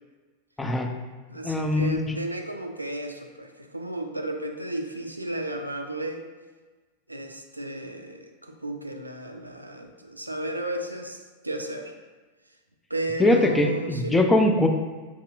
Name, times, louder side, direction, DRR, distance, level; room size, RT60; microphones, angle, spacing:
voice 1, 0.6-0.9 1.4-2.2 13.2-14.7, left 1 dB, 10° left, 3 dB, 0.4 m, -21 dB
voice 2, 1.3-6.3 7.1-11.9 12.9-14.3, right 1 dB, 85° right, 5 dB, 0.3 m, -33 dB
5.9 x 2.8 x 2.4 m, 1.3 s
figure-of-eight pair, 90°, 0 cm